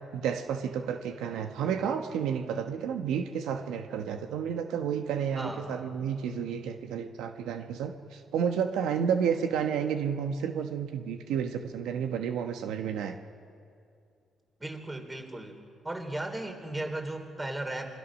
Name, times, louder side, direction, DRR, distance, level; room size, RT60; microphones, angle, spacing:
voice 1, 0.1-13.2, right 7 dB, 90° right, 6 dB, 1.1 m, -31 dB
voice 2, 5.4-5.7 14.6-15.6 15.8-17.9, right 2 dB, 20° right, 5 dB, 3.5 m, -36 dB
27.0 x 22.5 x 6.4 m, 2.4 s
cardioid pair, 90°, 0 cm